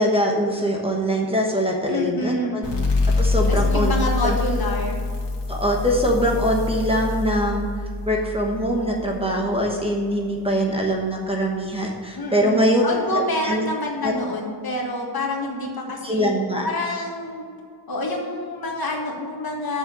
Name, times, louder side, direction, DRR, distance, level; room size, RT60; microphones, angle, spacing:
voice 1, 0.0-2.6 3.2-3.9 4.2-4.4 5.5-7.7 8.1-12.8 13.1-13.6 14.0-14.1 16.0-16.6, equal, 15° right, -1 dB, 1.1 m, -22 dB
voice 2, 1.9-2.6 3.5-5.0 12.2-16.3 16.6-17.5 17.9-19.8, left 1 dB, 55° left, -2 dB, 1.9 m, -27 dB
sound 1, 2.6-9.9, left 3 dB, 90° left, 1.8 m, -25 dB
7.2 x 6.7 x 7.1 m, 2.1 s
wide cardioid pair, 175°, 43 cm